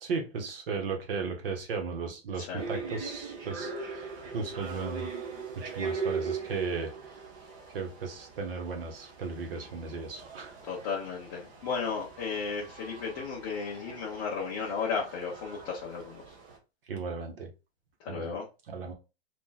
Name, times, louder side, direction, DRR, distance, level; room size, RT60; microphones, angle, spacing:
voice 1, 0.0-5.1 5.6-7.2 7.7-10.5 16.9-17.5 18.1-18.4 18.7-18.9, right 4 dB, 60° right, 1.1 m, -36 dB
sound 1, 2.6-16.6, right 5 dB, 20° right, 0.6 m, -40 dB
voice 2, 10.7-16.2 18.0-18.4, left 5 dB, 25° left, 0.6 m, -34 dB
2.9 x 2.5 x 3.8 m
hypercardioid pair, 160°, 32 cm